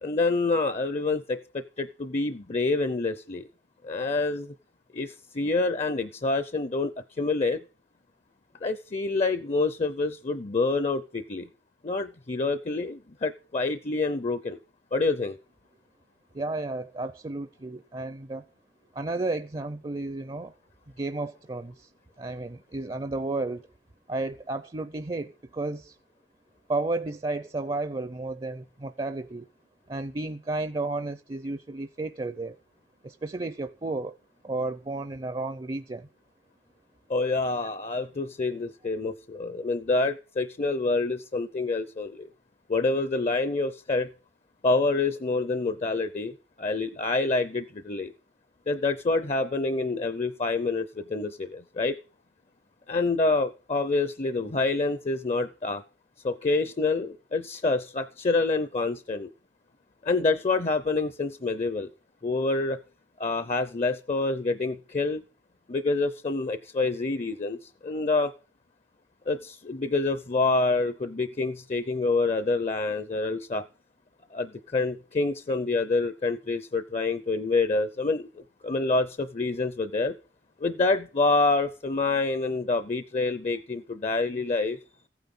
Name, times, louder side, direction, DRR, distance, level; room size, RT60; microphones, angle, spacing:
voice 1, 0.0-3.5 3.8-4.5 4.9-6.9 7.2-7.6 8.6-11.5 11.8-14.6 14.9-15.4 37.1-42.3 42.7-44.1 44.6-48.1 48.7-52.0 52.9-55.8 56.2-59.3 60.0-61.9 62.2-62.8 63.2-65.2 65.7-68.3 69.3-73.7 74.3-80.2 80.6-84.8, left 3 dB, 35° left, 0.6 m, -27 dB
voice 2, 16.3-18.4 18.9-20.5 21.0-21.9 22.2-23.6 24.1-25.9 26.7-29.5 29.9-32.6 33.0-34.2 34.4-36.1, right 2 dB, 25° right, 0.5 m, -32 dB
15.0 x 9.3 x 5.5 m
head